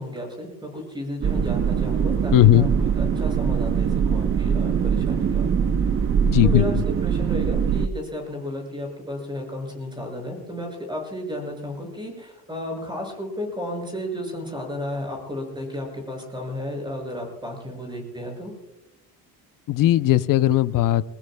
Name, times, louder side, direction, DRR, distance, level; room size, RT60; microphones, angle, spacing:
voice 1, 0.0-5.5 6.4-6.7 7.0-18.5, left 1 dB, 10° right, 2 dB, 6.2 m, -33 dB
sound 1, 1.2-7.9, right 7 dB, 35° right, 0.6 m, -22 dB
voice 2, 2.3-2.7 6.3-6.8 19.7-21.0, left 14 dB, 55° left, 14 dB, 0.7 m, -18 dB
24.0 x 20.0 x 2.3 m, 0.91 s
cardioid pair, 150°, 39 cm